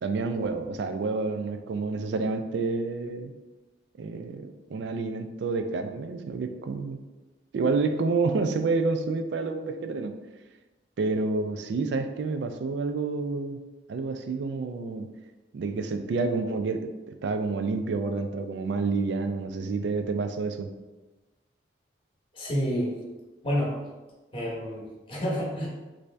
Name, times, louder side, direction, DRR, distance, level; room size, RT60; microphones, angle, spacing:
voice 1, 0.0-3.3 4.0-7.0 7.5-10.1 11.0-13.6 13.9-15.1 15.5-20.7, right 3 dB, 65° right, 8 dB, 0.3 m, -29 dB
voice 2, 22.3-22.9 23.4-23.8 24.3-25.7, equal, 30° left, -5 dB, 0.9 m, -29 dB
3.1 x 2.6 x 3.3 m, 1.1 s
head